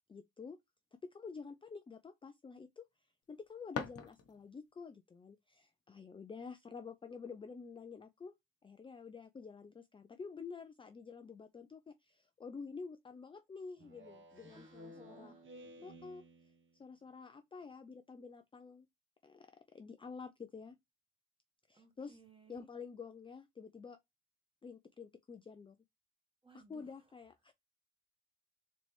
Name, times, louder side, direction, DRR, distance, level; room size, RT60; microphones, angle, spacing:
voice 1, 0.1-0.6 1.0-2.9 3.3-8.4 8.6-15.3 15.8-16.2 16.7-18.9 19.2-20.8 21.7-22.2 22.5-24.0 24.6-25.8 26.5-27.5, left 5 dB, 20° left, 0.4 m, -49 dB
sound 1, 3.2-4.7, left 6 dB, 50° left, 0.9 m, -44 dB
Speech synthesizer, 13.8-16.8, equal, 40° right, 1.0 m, -55 dB
voice 2, 14.4-15.4 21.7-22.7 26.4-26.9, right 3 dB, 15° right, 1.4 m, -61 dB
3.9 x 3.3 x 3.1 m
cardioid pair, 90°, 30 cm